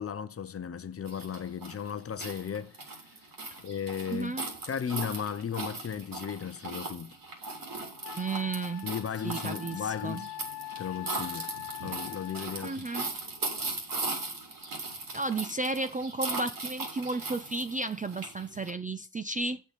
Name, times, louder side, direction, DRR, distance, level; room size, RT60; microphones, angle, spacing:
voice 1, 0.0-2.8 3.6-4.4 4.7-7.2 8.8-10.3 10.8-11.5 11.8-12.9, left 8 dB, 30° left, 0.7 m, -35 dB
sound 1, 1.1-18.7, right 3 dB, 50° right, 3.4 m, -38 dB
voice 2, 4.1-4.5 8.2-8.9 9.2-10.2 12.6-13.1 15.1-19.6, right 3 dB, 20° right, 0.4 m, -33 dB
Wind instrument woodwind instrument, 7.4-7.5 8.0-12.7, left 19 dB, 85° left, 0.6 m, -43 dB
8.1 x 6.5 x 5.1 m
cardioid pair, 105°, 44 cm